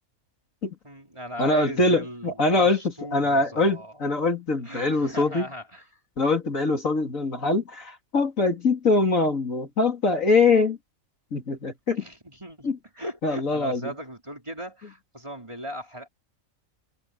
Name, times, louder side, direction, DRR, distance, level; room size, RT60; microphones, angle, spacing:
voice 1, 0.8-4.1 4.6-5.8 12.0-16.1, equal, 20° right, 4.4 m, -38 dB
voice 2, 1.4-5.5 6.2-10.8 11.3-12.1 12.6-12.8 13.2-13.9, left 3 dB, 65° left, 3.1 m, -23 dB
omnidirectional pair, 1.5 m